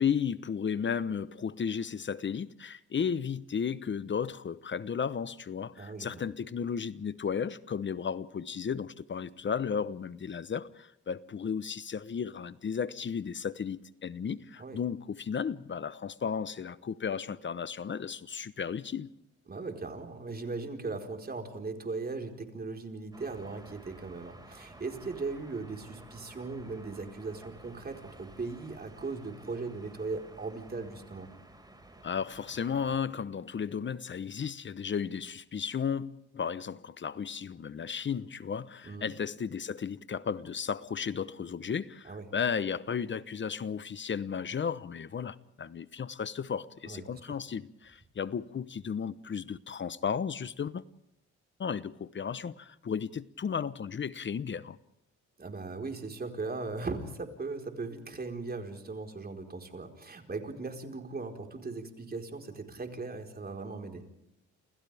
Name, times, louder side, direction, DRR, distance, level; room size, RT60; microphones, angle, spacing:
voice 1, 0.0-19.1 32.0-50.8 51.6-54.8, left 7 dB, 40° left, 1.0 m, -34 dB
voice 2, 5.8-6.2 14.6-14.8 19.5-31.3 38.8-39.1 42.0-42.3 46.8-47.4 55.4-64.0, right 3 dB, 30° right, 4.5 m, -38 dB
sound 1, 23.1-33.0, right 2 dB, 15° right, 5.5 m, -53 dB
30.0 x 28.5 x 3.5 m
cardioid pair, 90°, 30 cm